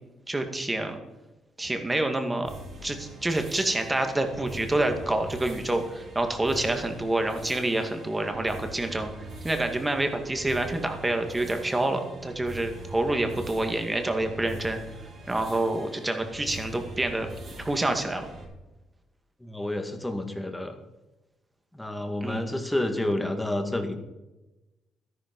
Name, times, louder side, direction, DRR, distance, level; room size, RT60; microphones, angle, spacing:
voice 1, 0.3-1.0 1.6-2.5 2.8-9.1 9.4-14.8 15.3-17.3 17.6-18.2 22.2-22.6, right 2 dB, 15° right, 6 dB, 2.2 m, -27 dB
sound 1, 2.4-18.4, right 1 dB, 60° right, 5.7 m, -43 dB
voice 2, 19.4-20.8 21.7-24.0, left 1 dB, 5° left, 5 dB, 2.1 m, -29 dB
13.0 x 11.0 x 5.4 m, 1.0 s
cardioid pair, 90°, 0 cm